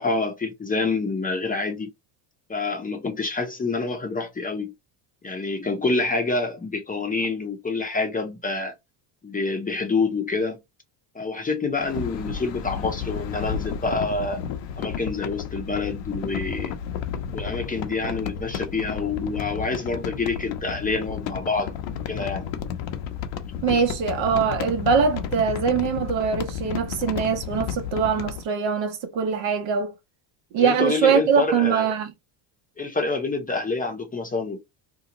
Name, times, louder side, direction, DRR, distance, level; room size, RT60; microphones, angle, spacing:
voice 1, 0.0-1.9 2.5-4.7 5.2-8.7 9.2-10.6 11.1-14.4 14.8-16.7 17.3-21.7 22.1-22.5 23.7-23.8 30.6-31.9 32.8-34.6, left 3 dB, 15° left, 0.7 m, -27 dB
sound 1, 11.7-28.4, left 8 dB, 65° left, 0.8 m, -32 dB
voice 2, 23.6-29.9 30.5-32.1, right 6 dB, 60° right, 1.0 m, -22 dB
2.9 x 2.2 x 3.7 m
cardioid pair, 115°, 49 cm